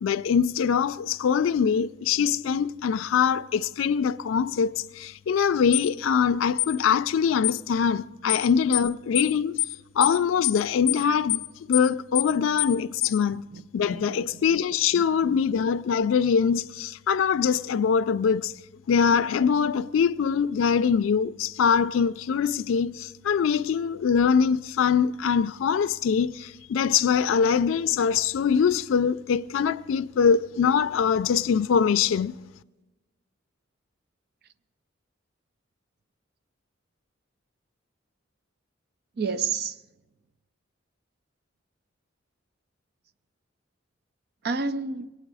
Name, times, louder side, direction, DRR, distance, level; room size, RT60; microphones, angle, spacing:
voice 1, 0.0-9.6 10.0-13.4 13.7-18.5 18.9-32.3, left 7 dB, 90° left, 0.4 m, -23 dB
sound 1, 5.7-5.9 6.6-6.7 7.4-7.6 8.3-8.5 8.7-8.9 9.1-9.3 9.6-9.7 10.0-10.2 10.4-10.6 10.9-11.0 11.3-11.5 11.7-11.9 12.1-12.3 12.6-12.7 13.0-13.2, left 19 dB, 45° left, 0.7 m, -25 dB
voice 2, 13.3-13.6 13.9-14.2 14.9-15.4 39.2-39.7 44.4-45.1, right 4 dB, 55° right, 0.5 m, -30 dB
22.5 x 9.0 x 4.8 m
head